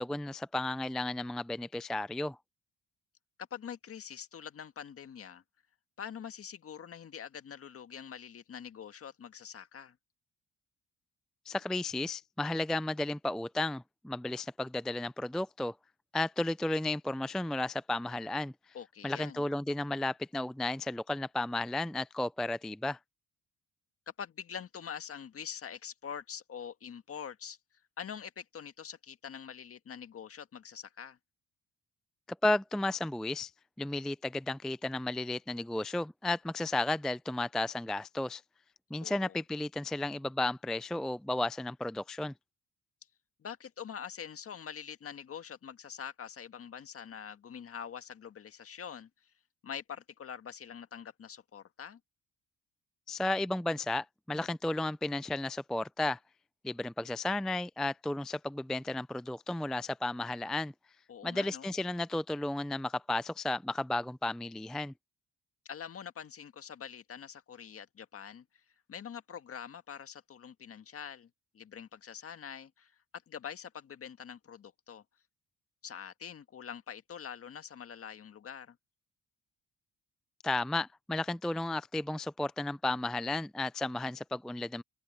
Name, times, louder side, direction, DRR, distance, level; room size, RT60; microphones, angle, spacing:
voice 1, 0.0-2.4 11.5-15.7 16.1-18.5 19.0-23.0 32.4-33.5 33.8-38.4 38.9-42.3 53.1-56.2 56.6-60.7 61.2-64.9 80.4-84.8, left 2 dB, ahead, 0.3 m, -33 dB
voice 2, 3.5-5.4 6.0-10.0 18.7-19.4 24.2-27.6 28.0-31.2 39.0-39.4 43.4-49.3 49.6-52.0 61.1-61.7 65.6-68.4 68.9-71.3 71.5-73.0 73.3-75.0 75.8-78.8, left 8 dB, 50° left, 1.7 m, -45 dB
open air
cardioid pair, 90°, 30 cm